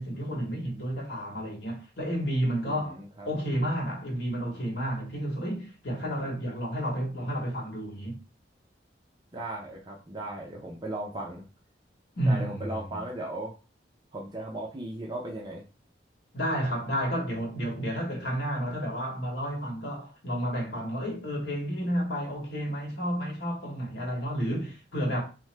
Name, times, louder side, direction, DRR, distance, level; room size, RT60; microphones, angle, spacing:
voice 1, 0.0-3.0 3.3-8.2 12.2-13.0 16.3-25.2, equal, 65° left, 1.0 m, -31 dB
voice 2, 2.6-3.3 9.3-11.4 12.3-13.5 14.1-15.6, right 1 dB, 25° right, 0.4 m, -37 dB
2.9 x 2.1 x 3.2 m
head